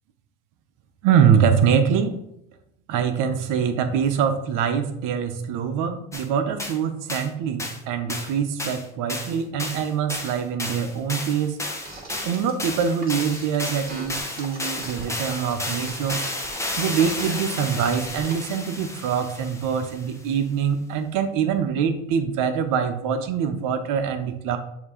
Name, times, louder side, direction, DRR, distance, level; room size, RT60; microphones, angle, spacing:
voice 1, 1.0-2.2 2.9-11.6 12.2-16.2 16.8-24.6, right 7 dB, 60° right, 8 dB, 1.0 m, -24 dB
sound 1, 6.1-6.3 6.6-6.8 7.1-7.3 7.6-7.8 8.1-8.3 8.6-20.1, left 1 dB, 10° left, 1.1 m, -32 dB
sound 2, 11.9-18.5, right 2 dB, 25° right, 2.6 m, -40 dB
7.1 x 3.0 x 5.1 m, 0.79 s
supercardioid pair, 85°, 35 cm